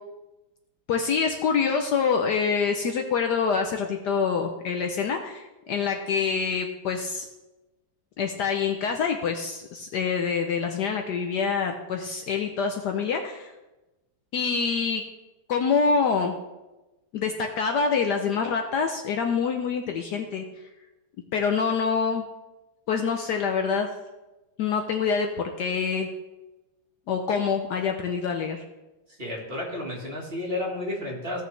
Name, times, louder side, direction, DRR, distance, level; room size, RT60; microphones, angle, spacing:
voice 1, 0.9-7.3 8.2-13.5 14.3-15.0 15.5-16.4 17.1-20.4 21.3-22.2 22.9-23.9 24.6-25.3 25.6-26.1 27.1-28.6, left 5 dB, 65° left, 4 dB, 1.1 m, -26 dB
voice 2, 29.2-31.4, left 1 dB, 30° right, -2 dB, 1.9 m, -31 dB
16.0 x 6.5 x 3.2 m, 1.1 s
omnidirectional pair, 2.2 m